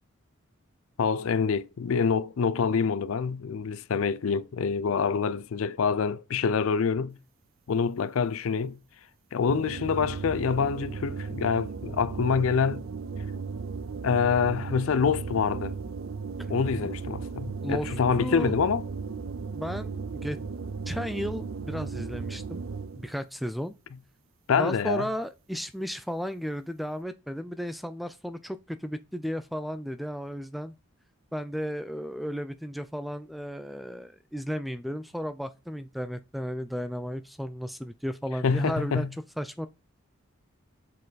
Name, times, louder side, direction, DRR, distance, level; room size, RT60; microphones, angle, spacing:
voice 1, 1.0-7.2 7.7-8.8 9.3-12.8 14.0-15.8 16.5-18.9 24.5-25.1 38.4-39.1, left 6 dB, 70° left, 0.4 m, -26 dB
sound 1, 9.5-23.1, right 4 dB, 65° right, 0.4 m, -36 dB
voice 2, 18.2-18.5 19.5-20.4 20.9-22.6 22.9-23.7 24.6-30.7 31.3-39.1 39.4-39.7, equal, ahead, 0.3 m, -34 dB
7.5 x 4.5 x 4.0 m
head